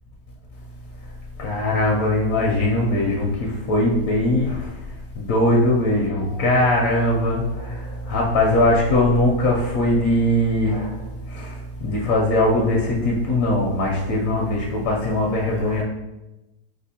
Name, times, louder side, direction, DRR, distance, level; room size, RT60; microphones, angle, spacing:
voice 1, 1.4-4.7 5.2-15.8, left 1 dB, 70° left, -2 dB, 0.8 m, -21 dB
4.2 x 2.5 x 2.7 m, 1.0 s
omnidirectional pair, 1.8 m